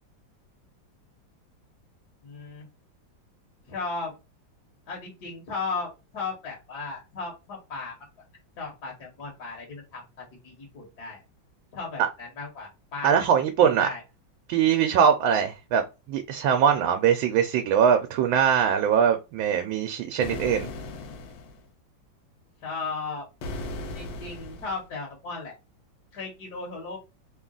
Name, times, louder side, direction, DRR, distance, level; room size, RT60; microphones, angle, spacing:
voice 1, 2.2-2.7 3.7-4.1 4.9-8.0 8.6-11.2 11.7-13.3 13.6-14.0 20.9-21.0 22.6-23.3 23.9-25.6 26.1-27.0, left 4 dB, 60° left, 1.6 m, -36 dB
voice 2, 13.0-13.9 14.5-20.7, right 8 dB, 90° right, 1.4 m, -22 dB
sound 1, 20.2-21.6 23.4-24.8, left 2 dB, 80° left, 1.4 m, -37 dB
3.6 x 2.3 x 3.7 m
omnidirectional pair, 2.1 m